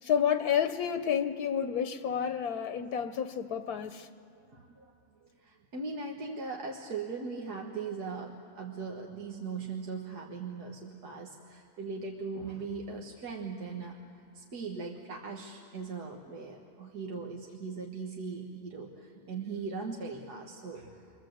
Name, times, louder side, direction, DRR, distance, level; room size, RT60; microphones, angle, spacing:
voice 1, 0.0-4.1, left 8 dB, 75° left, 9 dB, 1.3 m, -30 dB
voice 2, 4.5-4.9 5.2-14.0 14.3-21.0, right 4 dB, 80° right, 0 dB, 2.1 m, -39 dB
29.0 x 23.5 x 7.9 m, 2.6 s
omnidirectional pair, 1.7 m